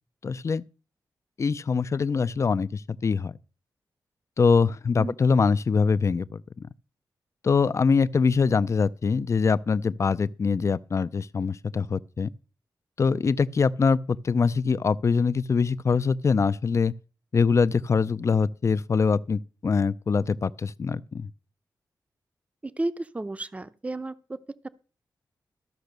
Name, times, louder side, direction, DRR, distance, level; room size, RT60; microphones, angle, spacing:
voice 1, 0.2-0.6 1.4-3.3 4.4-6.7 7.4-12.3 13.0-16.9 17.3-21.3, left 5 dB, 40° left, 0.5 m, -23 dB
voice 2, 22.6-24.4 24.6-24.7, right 2 dB, 20° right, 0.6 m, -32 dB
13.5 x 5.8 x 6.6 m
wide cardioid pair, 105°, 7 cm